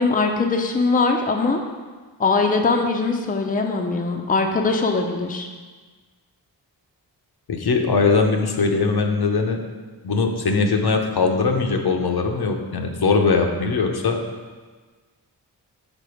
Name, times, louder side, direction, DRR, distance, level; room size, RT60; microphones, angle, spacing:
voice 1, 0.0-1.6 2.2-5.5, left 3 dB, 20° left, 2 dB, 0.6 m, -21 dB
voice 2, 7.5-9.6 10.0-14.2, left 4 dB, 60° left, 3 dB, 0.8 m, -20 dB
5.2 x 3.7 x 4.9 m, 1.4 s
cardioid pair, 45°, 44 cm